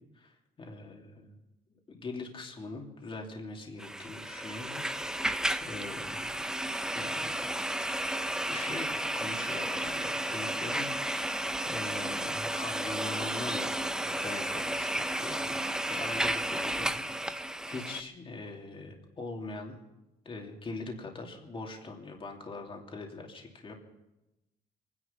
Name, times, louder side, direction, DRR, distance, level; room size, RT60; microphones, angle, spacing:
voice 1, 0.1-1.4 1.9-4.8 5.2-6.6 6.9-7.4 8.5-17.0 17.2-19.8 20.2-23.7, left 3 dB, 30° left, 1 dB, 2.7 m, -42 dB
sound 1, 3.8-18.0, right 1 dB, 5° right, 0.6 m, -33 dB
24.5 x 10.5 x 5.7 m, 0.97 s
cardioid pair, 110°, 17 cm